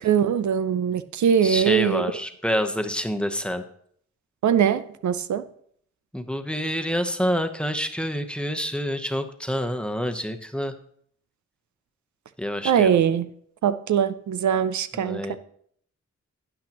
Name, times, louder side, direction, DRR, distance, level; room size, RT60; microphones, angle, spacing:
voice 1, 0.0-2.1 4.4-5.4 12.6-13.3 13.6-15.4, right 8 dB, 80° right, 12 dB, 0.5 m, -22 dB
voice 2, 1.4-3.6 6.1-10.7 12.4-12.9 14.9-15.4, equal, 5° left, 6 dB, 0.9 m, -27 dB
12.0 x 8.6 x 3.0 m, 0.64 s
cardioid pair, 70°, 29 cm